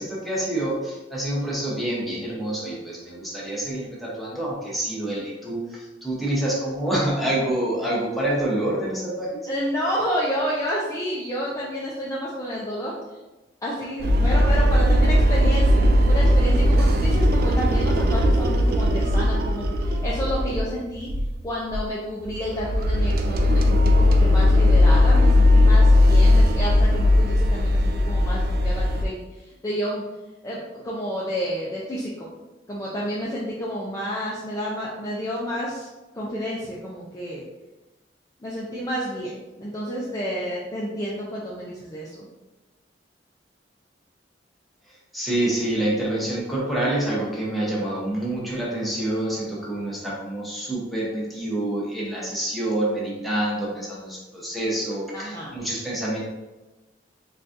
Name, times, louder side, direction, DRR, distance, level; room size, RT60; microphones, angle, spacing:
voice 1, 0.0-9.4 45.1-56.2, right 1 dB, ahead, -6 dB, 0.8 m, -27 dB
voice 2, 9.5-12.9 13.6-21.1 21.4-30.0 30.4-32.3 32.7-35.9 36.1-37.4 38.4-42.3 55.1-55.5, equal, 20° left, -6 dB, 0.4 m, -30 dB
sound 1, 14.0-20.7 21.1-21.4 21.7-21.8 22.3-29.0, left 1 dB, 55° right, 0.3 m, -18 dB
3.9 x 2.3 x 2.5 m, 1.1 s
head